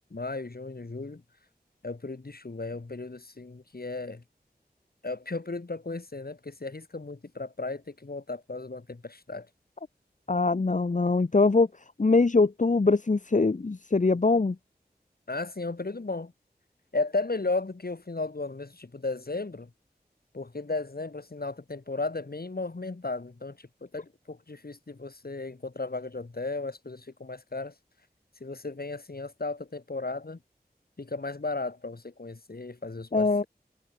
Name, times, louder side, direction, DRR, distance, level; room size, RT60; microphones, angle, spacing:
voice 1, 0.1-1.2 1.8-4.2 5.0-9.5 15.3-16.3 16.9-19.7 20.3-27.7 28.4-30.4 31.0-33.5, left 3 dB, 65° left, 6.8 m, -35 dB
voice 2, 10.3-11.7 12.0-14.6 33.1-33.4, left 3 dB, 50° left, 1.0 m, -22 dB
wide cardioid pair, 40°, 17 cm